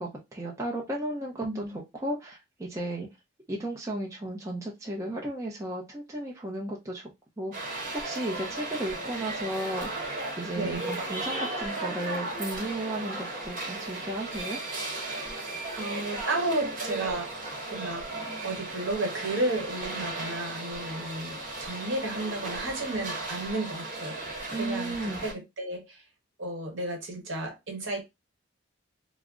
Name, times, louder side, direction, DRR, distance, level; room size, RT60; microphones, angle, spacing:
voice 1, 0.0-1.6 2.0-3.1 3.5-7.1 7.4-14.6 24.5-25.3, right 1 dB, 15° right, 0.5 m, -34 dB
voice 2, 1.4-1.8 10.6-10.8 15.7-26.0 26.4-28.0, right 2 dB, 70° right, 1.1 m, -33 dB
sound 1, 7.5-25.3, right 2 dB, 40° right, 0.9 m, -36 dB
2.3 x 2.0 x 3.6 m
head